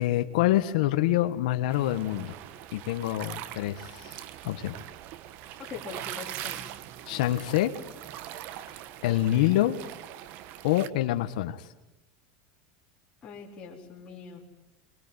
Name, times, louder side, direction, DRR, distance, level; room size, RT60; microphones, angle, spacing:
voice 1, 0.0-2.4 2.7-4.2 4.4-4.8 7.1-7.7 9.0-9.8 10.6-11.7, left 14 dB, 80° left, 8 dB, 1.4 m, -26 dB
sound 1, 1.7-10.9, right 12 dB, 50° right, 1.2 m, -42 dB
voice 2, 5.6-6.7 9.3-9.6 13.2-14.4, left 6 dB, 25° left, -5 dB, 4.1 m, -43 dB
24.0 x 21.5 x 9.8 m, 1.0 s
supercardioid pair, 150°, 4 cm